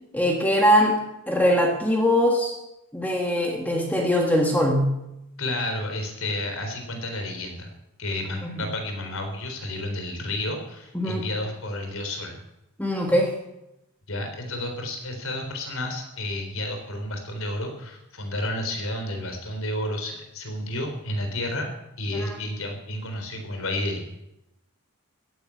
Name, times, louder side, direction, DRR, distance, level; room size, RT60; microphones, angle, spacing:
voice 1, 0.1-2.6 2.9-5.0 8.4-8.6 10.9-11.2 12.8-13.4 22.1-22.3, equal, 5° left, 1 dB, 1.7 m, -22 dB
voice 2, 5.4-7.7 8.0-12.4 14.1-21.7 22.0-24.1, left 1 dB, 70° left, 5 dB, 3.8 m, -31 dB
15.5 x 11.0 x 8.5 m, 0.90 s
head